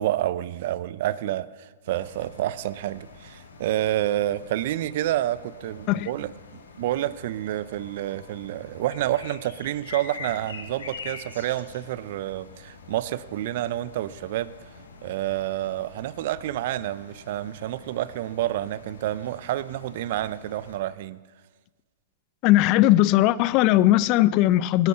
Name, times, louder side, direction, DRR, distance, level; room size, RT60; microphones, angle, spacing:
voice 1, 0.0-6.3 6.8-14.5 15.0-21.2, right 13 dB, 60° right, 0.5 m, -29 dB
sound 1, 1.9-20.8, left 4 dB, 90° left, 2.0 m, -45 dB
voice 2, 22.4-24.9, left 15 dB, 45° left, 0.5 m, -19 dB
19.0 x 9.0 x 5.7 m
hypercardioid pair, 115°, 0 cm